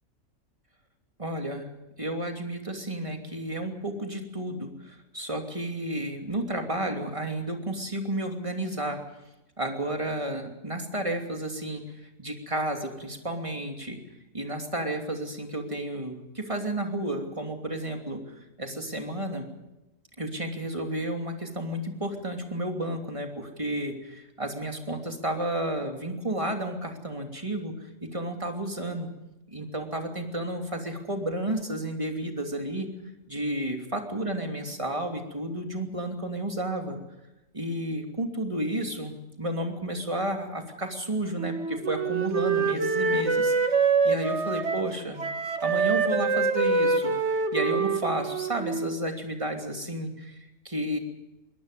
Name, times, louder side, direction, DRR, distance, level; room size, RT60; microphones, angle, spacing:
voice 1, 1.2-1.7 2.0-9.0 9.6-11.8 12.2-14.0 14.3-18.2 18.6-19.5 20.2-27.7 28.0-29.1 29.5-32.9 33.3-37.0 37.5-43.5 44.0-45.2 45.6-47.1 47.5-50.3 50.6-51.0, right 1 dB, 25° right, 4 dB, 3.0 m, -32 dB
Wind instrument woodwind instrument, 41.4-44.9 45.2-49.0, right 4 dB, 60° right, 1.8 m, -25 dB
23.0 x 18.5 x 6.9 m, 0.95 s
omnidirectional pair, 1.3 m